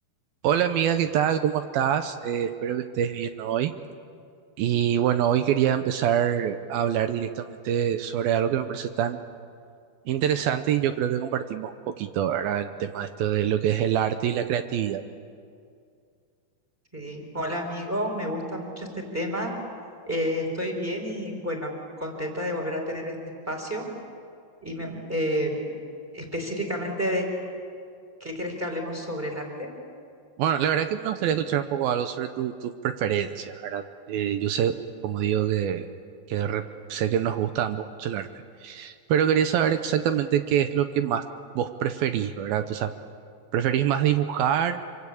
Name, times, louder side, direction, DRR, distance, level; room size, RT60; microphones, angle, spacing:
voice 1, 0.4-3.7 4.6-9.2 10.1-15.0 30.4-34.7 35.0-35.9 36.3-36.6 36.9-38.3 38.6-41.2 41.6-42.9 43.5-44.8, right 9 dB, 80° right, 9 dB, 2.2 m, -25 dB
voice 2, 16.9-19.5 20.1-21.7 22.0-23.1 23.5-23.9 24.6-25.6 26.1-27.3 28.2-29.7, equal, 5° right, 2 dB, 3.8 m, -30 dB
27.0 x 24.5 x 8.6 m, 2.3 s
omnidirectional pair, 5.2 m